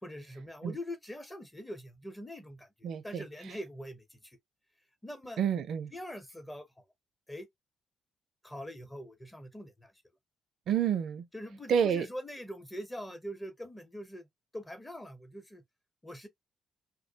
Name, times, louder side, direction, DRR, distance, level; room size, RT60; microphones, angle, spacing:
voice 1, 0.0-4.4 5.0-5.4 5.9-6.7 7.3-7.5 8.4-9.9 11.3-14.3 14.5-15.6 16.0-16.3, equal, 15° left, 0.8 m, -43 dB
voice 2, 2.8-3.2 5.4-5.9 10.7-11.3 11.7-12.1, right 8 dB, 70° right, 0.5 m, -29 dB
2.3 x 2.1 x 2.7 m
cardioid pair, 90°, 0 cm